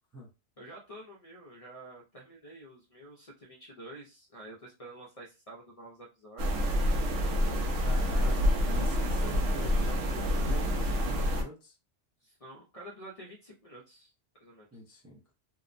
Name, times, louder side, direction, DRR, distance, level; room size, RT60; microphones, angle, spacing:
voice 1, 0.6-6.5 12.2-14.1 14.4-14.7, right 1 dB, 45° left, -1 dB, 0.5 m, -49 dB
sound 1, 6.4-11.4, equal, 80° right, 0.9 m, -27 dB
voice 2, 7.8-11.7 14.7-15.2, left 1 dB, 25° right, -5 dB, 0.3 m, -45 dB
2.8 x 2.0 x 2.5 m, 0.28 s
omnidirectional pair, 1.2 m